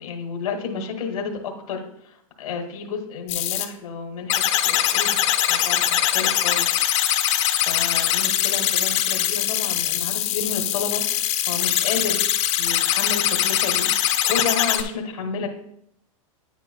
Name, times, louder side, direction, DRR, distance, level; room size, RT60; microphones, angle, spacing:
voice 1, 0.0-5.2 5.5-5.8 6.1-6.7 7.7-11.0 11.4-12.2 12.6-15.5, left 5 dB, 85° left, 0 dB, 1.6 m, -31 dB
sound 1, 3.3-3.7 4.3-14.8, left 12 dB, 50° left, 1.0 m, -22 dB
9.4 x 8.3 x 2.2 m, 0.73 s
hypercardioid pair, 150°, 18 cm